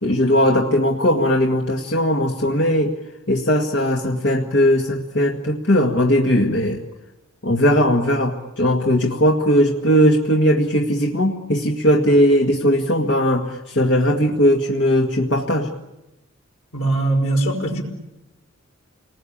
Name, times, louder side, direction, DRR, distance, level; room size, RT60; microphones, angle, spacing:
voice 1, 0.0-2.9 3.3-6.8 7.4-15.7, equal, 60° left, 0 dB, 1.9 m, -18 dB
voice 2, 16.7-17.8, right 2 dB, 90° left, 2 dB, 5.1 m, -21 dB
29.5 x 20.5 x 8.8 m, 1.0 s
head